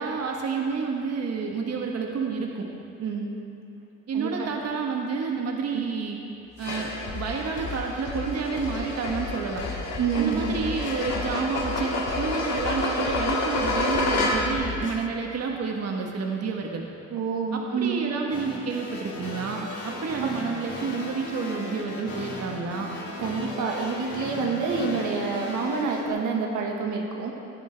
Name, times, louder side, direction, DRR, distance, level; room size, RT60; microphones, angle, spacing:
voice 1, 0.0-2.7 4.1-6.2 6.6-9.6 10.2-16.8 17.5-22.9, right 5 dB, 55° right, 1 dB, 1.2 m, -29 dB
voice 2, 3.0-3.3 4.1-4.6 5.7-5.8 10.0-10.6 17.1-18.0 20.2-20.3 23.2-27.3, right 5 dB, 85° right, 0 dB, 1.5 m, -28 dB
sound 1, 6.6-14.7, left 2 dB, 60° left, 2.2 m, -29 dB
sound 2, 7.1-15.1, left 7 dB, 40° left, 0.6 m, -37 dB
sound 3, 18.3-26.1, left 3 dB, 75° left, 2.2 m, -37 dB
16.0 x 10.0 x 3.4 m, 2.7 s
cardioid pair, 90°, 30 cm